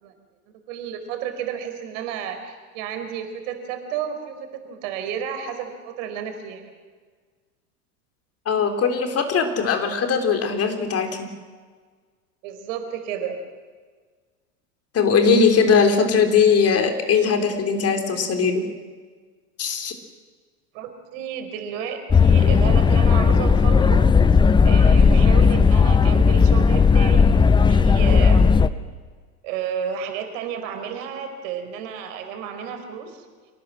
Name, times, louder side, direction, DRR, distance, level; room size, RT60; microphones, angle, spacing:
voice 1, 0.7-6.6 12.4-13.4 20.7-24.0 24.6-28.5 29.4-33.3, right 8 dB, 55° right, 7 dB, 4.6 m, -32 dB
voice 2, 8.5-11.3 14.9-18.7 19.6-20.0, left 5 dB, 30° left, 6 dB, 3.6 m, -20 dB
sound 1, 22.1-28.7, left 5 dB, 10° left, 0.7 m, -15 dB
26.5 x 18.5 x 7.7 m, 1.5 s
hypercardioid pair, 95°, 45 cm